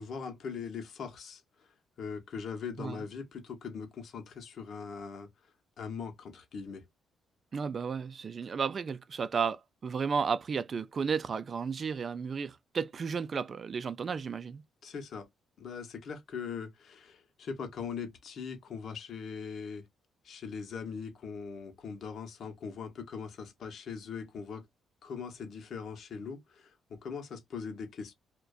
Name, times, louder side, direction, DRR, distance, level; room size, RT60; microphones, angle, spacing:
voice 1, 0.0-1.7 2.0-5.3 5.8-6.9 14.8-15.3 15.6-19.8 20.2-24.7 25.0-28.1, left 6 dB, 60° left, 0.8 m, -41 dB
voice 2, 7.5-14.6, right 6 dB, 45° right, 0.4 m, -33 dB
2.5 x 2.2 x 2.3 m
cardioid pair, 90°, 0 cm